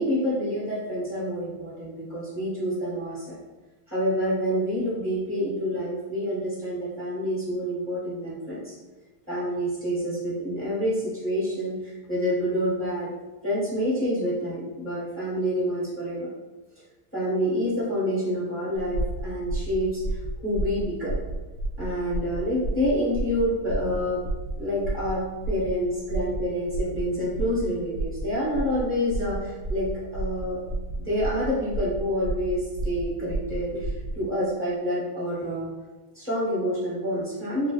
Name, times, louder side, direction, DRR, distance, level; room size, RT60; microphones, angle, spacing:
voice 1, 0.0-3.4 3.9-8.7 9.3-13.1 13.4-16.3 17.1-20.0 20.4-21.1 21.8-24.2 24.6-30.6 31.0-35.7 36.1-37.7, equal, 10° left, -10 dB, 0.8 m, -27 dB
sound 1, 18.8-34.2, right 2 dB, 80° right, 0.9 m, -32 dB
4.6 x 2.1 x 2.4 m, 1.2 s
omnidirectional pair, 2.3 m